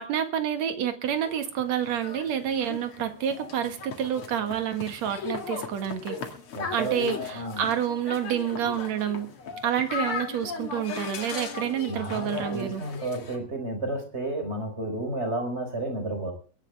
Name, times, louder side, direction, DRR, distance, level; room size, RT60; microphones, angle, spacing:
voice 1, 0.0-6.2 6.7-9.3 9.6-12.8, right 9 dB, 55° right, 2.6 m, -28 dB
sound 1, 1.0-13.4, left 5 dB, 45° left, 2.5 m, -37 dB
voice 2, 6.5-7.6 11.8-16.3, right 2 dB, 15° right, 4.8 m, -32 dB
22.5 x 11.0 x 3.4 m
omnidirectional pair, 4.0 m